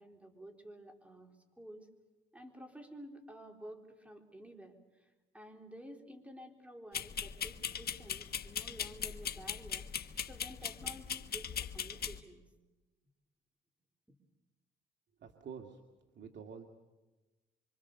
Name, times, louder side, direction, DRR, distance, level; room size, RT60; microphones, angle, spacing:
voice 1, 0.0-1.9 2.3-9.9 10.2-12.4 14.1-14.2, equal, 5° right, 3 dB, 4.1 m, -52 dB
sound 1, 6.9-12.2, left 8 dB, 50° left, 1.3 m, -39 dB
voice 2, 15.2-15.8 16.1-16.7, right 6 dB, 60° right, 2 dB, 2.3 m, -48 dB
26.0 x 25.5 x 6.8 m, 1.1 s
cardioid pair, 90°, 20 cm